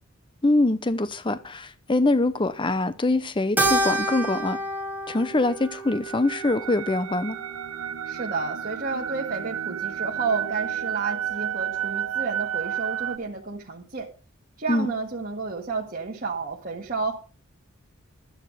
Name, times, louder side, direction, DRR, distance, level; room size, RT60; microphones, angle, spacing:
voice 1, 0.4-4.6 5.1-7.4 14.7-14.9, left 2 dB, 25° left, 0.7 m, -24 dB
Keyboard (musical), 3.6-8.2, right 1 dB, 10° right, 1.5 m, -29 dB
sound 1, 5.4-13.2, right 10 dB, 80° right, 0.8 m, -31 dB
voice 2, 8.1-14.1 14.6-17.1, right 4 dB, 40° right, 1.6 m, -31 dB
12.0 x 9.1 x 4.9 m
head